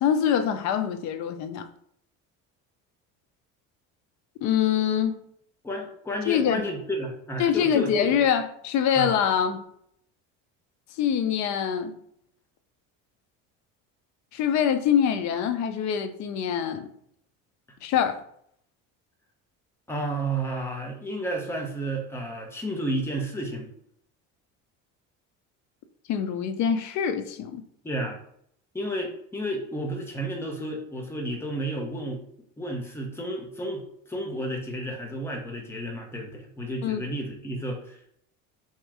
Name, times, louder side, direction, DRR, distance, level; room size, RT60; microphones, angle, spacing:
voice 1, 0.0-1.7 4.4-5.2 6.3-6.6 7.4-9.6 11.0-11.9 14.3-16.9 17.8-18.2 26.1-27.6 36.8-37.0, left 8 dB, 55° left, 0.6 m, -24 dB
voice 2, 5.6-8.1 8.9-9.1 19.9-23.7 27.8-28.2 28.7-32.2 32.6-38.2, right 1 dB, 5° left, 0.9 m, -32 dB
3.6 x 2.8 x 4.8 m
cardioid pair, 140°, 33 cm